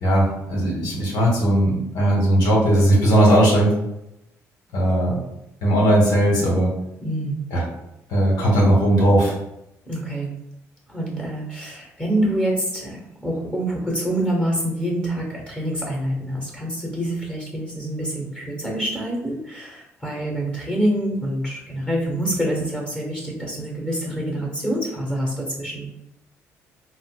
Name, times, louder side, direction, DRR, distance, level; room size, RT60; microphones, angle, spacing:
voice 1, 0.0-3.7 4.7-5.2 5.6-6.7 7.5-7.6 8.1-9.3, right 1 dB, 75° left, -3 dB, 1.2 m, -18 dB
voice 2, 7.0-7.4 9.9-10.4 10.9-25.9, right 1 dB, 15° left, -2 dB, 1.2 m, -26 dB
4.0 x 2.1 x 2.3 m, 0.85 s
supercardioid pair, 60°, 7 cm